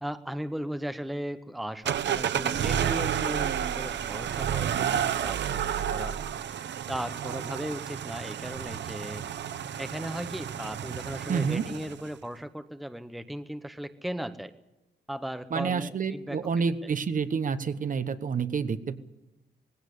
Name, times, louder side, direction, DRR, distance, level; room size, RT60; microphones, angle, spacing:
voice 1, 0.0-6.2 6.9-9.2 9.8-14.5 15.1-16.9, equal, ahead, 10 dB, 0.8 m, -37 dB
sound 1, 1.9-12.1, right 9 dB, 85° right, 0.8 m, -31 dB
voice 2, 11.3-11.7 15.5-19.0, right 5 dB, 50° right, 11 dB, 1.1 m, -28 dB
19.5 x 16.0 x 8.4 m, 1.0 s
wide cardioid pair, 175°, 18 cm